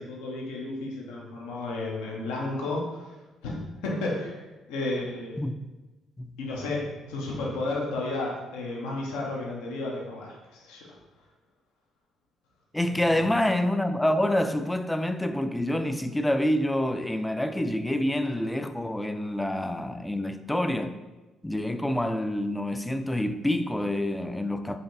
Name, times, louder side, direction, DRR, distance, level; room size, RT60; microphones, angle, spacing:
voice 1, 0.0-4.4 4.7-5.4 6.4-10.9 12.9-13.3, left 2 dB, 75° left, 0.7 m, -33 dB
voice 2, 12.7-21.0 21.4-24.8, left 1 dB, 10° left, 0.3 m, -27 dB
4.1 x 3.2 x 2.6 m
hypercardioid pair, 50°, 0 cm